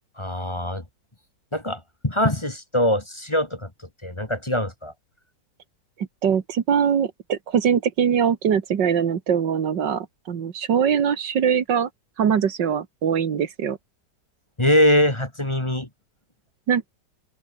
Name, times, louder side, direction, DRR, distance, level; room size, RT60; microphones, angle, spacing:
voice 1, 0.2-0.8 1.5-3.7 4.0-4.9 14.6-15.9, left 1 dB, 15° left, 2.4 m, -22 dB
voice 2, 6.0-11.9 12.2-13.8 16.7-16.9, right 7 dB, 85° right, 2.3 m, -22 dB
omnidirectional pair, 1.9 m